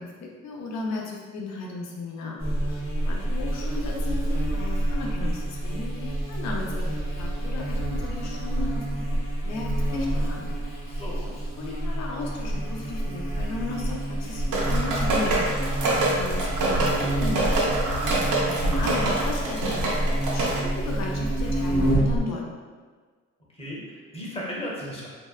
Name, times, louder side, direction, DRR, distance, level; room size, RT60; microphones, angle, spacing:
voice 1, 0.0-2.4 2.7-9.0 9.4-10.5 11.2-15.5 15.8-17.8 18.2-22.4, left 3 dB, 65° left, 0 dB, 0.5 m, -35 dB
Buzz, 2.4-22.2, right 1 dB, 45° left, 0.9 m, -28 dB
voice 2, 10.8-11.2 23.6-25.1, equal, 20° left, -5 dB, 0.8 m, -35 dB
sound 1, 14.5-20.6, right 2 dB, 90° right, 0.6 m, -26 dB
2.6 x 2.0 x 2.3 m, 1.5 s
cardioid pair, 90°, 30 cm